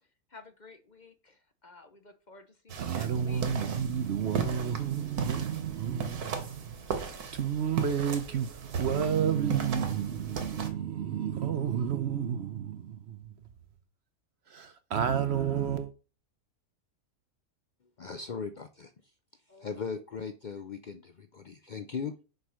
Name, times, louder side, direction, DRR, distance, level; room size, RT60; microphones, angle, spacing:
voice 1, 0.3-3.4 4.5-4.7 19.5-20.0, left 3 dB, 40° left, 0.7 m, -54 dB
sound 1, 2.7-10.7, right 5 dB, 85° right, 1.8 m, -37 dB
voice 2, 2.8-13.3 14.5-15.9, right 8 dB, 55° right, 0.8 m, -31 dB
voice 3, 18.0-19.1 19.6-22.2, left 5 dB, 90° left, 0.4 m, -38 dB
6.6 x 4.7 x 6.2 m
omnidirectional pair, 1.6 m